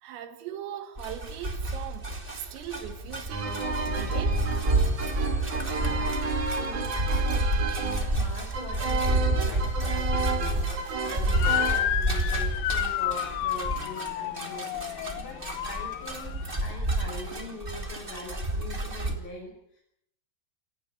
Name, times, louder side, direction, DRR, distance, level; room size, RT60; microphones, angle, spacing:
voice 1, 0.0-4.5, right 10 dB, 85° right, 4.6 m, -40 dB
sound 1, 1.0-19.1, right 1 dB, 15° right, 1.8 m, -29 dB
sound 2, 3.3-11.8, right 4 dB, 40° right, 4.2 m, -32 dB
voice 2, 5.7-10.6 11.0-19.8, left 1 dB, 25° left, 6.2 m, -43 dB
Motor vehicle (road) / Siren, 11.3-16.6, left 13 dB, 80° left, 3.7 m, -30 dB
29.5 x 14.5 x 9.8 m
omnidirectional pair, 5.8 m